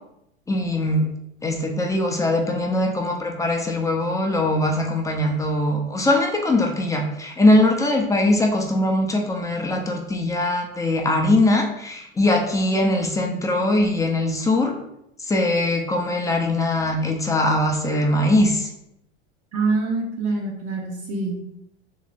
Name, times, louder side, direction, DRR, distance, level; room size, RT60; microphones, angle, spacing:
voice 1, 0.5-1.1 1.4-14.7 15.3-18.7, left 1 dB, 10° left, 1 dB, 0.6 m, -21 dB
voice 2, 19.5-21.4, right 3 dB, 45° right, -2 dB, 1.0 m, -25 dB
3.2 x 3.0 x 4.1 m, 0.79 s
hypercardioid pair, 110°, 32 cm